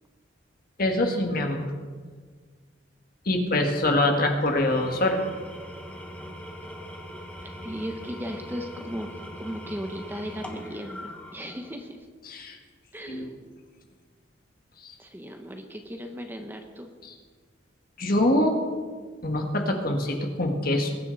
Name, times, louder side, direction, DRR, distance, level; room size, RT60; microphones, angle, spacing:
voice 1, 0.8-1.6 3.3-5.2 12.2-12.6 13.1-13.3 17.0-17.1 18.0-18.6 19.2-21.0, left 1 dB, 50° left, 3 dB, 1.8 m, -24 dB
Engine / Tools, 4.5-11.9, equal, 5° left, 1.4 m, -41 dB
voice 2, 7.4-12.1 12.9-13.4 15.0-16.9, equal, 10° right, 4 dB, 0.9 m, -37 dB
21.5 x 10.0 x 4.1 m, 1.6 s
head